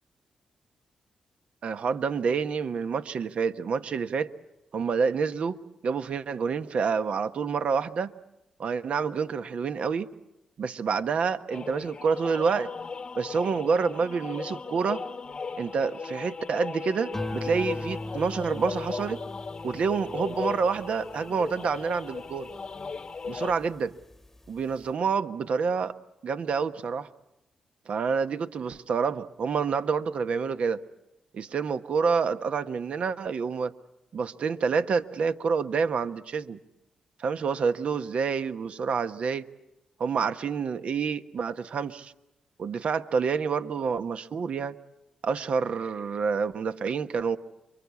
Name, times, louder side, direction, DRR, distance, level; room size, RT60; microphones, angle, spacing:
voice 1, 1.6-4.3 4.7-5.6 5.8-8.1 8.6-10.1 10.6-12.7 13.2-15.0 15.6-19.2 19.6-22.5 23.3-23.9 24.5-25.9 26.2-27.1 27.9-30.8 31.3-33.7 34.1-36.6 37.2-39.5 40.0-42.1 42.6-44.8 45.2-47.4, right 5 dB, 65° right, 10 dB, 1.1 m, -28 dB
sound 1, 11.5-23.5, left 5 dB, 50° left, 1.0 m, -37 dB
sound 2, 17.1-23.7 24.1-24.6, left 1 dB, 15° left, 1.1 m, -40 dB
28.0 x 24.0 x 8.3 m, 0.90 s
supercardioid pair, 50°, 2 cm